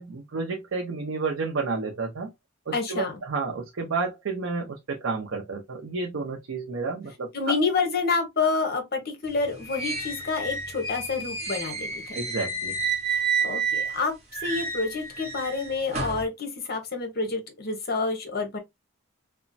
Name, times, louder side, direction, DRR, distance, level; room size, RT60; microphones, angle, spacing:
voice 1, 0.0-2.3 2.7-7.3 12.1-12.8, right 4 dB, 85° right, 0.6 m, -31 dB
voice 2, 2.7-3.2 7.3-12.2 13.1-18.6, left 4 dB, 50° left, 0.8 m, -28 dB
sound 1, 9.3-14.0 14.3-16.3, right 4 dB, 35° right, 0.9 m, -30 dB
2.9 x 2.2 x 2.5 m
head